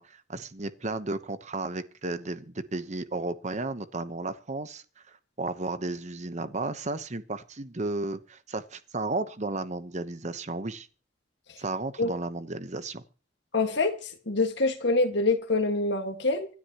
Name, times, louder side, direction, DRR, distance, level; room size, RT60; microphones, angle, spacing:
voice 1, 0.0-10.9 11.6-13.0, right 2 dB, 40° right, 1.0 m, -34 dB
voice 2, 13.5-13.9 14.3-16.5, left 3 dB, 65° left, 1.9 m, -25 dB
26.5 x 9.8 x 3.0 m
head